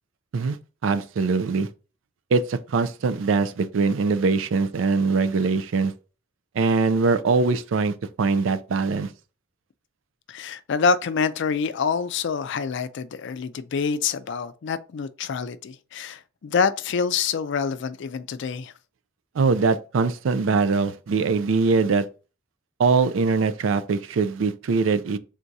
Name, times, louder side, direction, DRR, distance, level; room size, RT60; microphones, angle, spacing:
voice 1, 0.8-1.7 2.3-5.9 6.6-9.1 19.4-22.1 22.8-25.2, right 4 dB, 80° right, 0.4 m, -22 dB
voice 2, 10.3-18.7, left 5 dB, 65° left, 0.4 m, -26 dB
3.6 x 2.7 x 4.5 m
head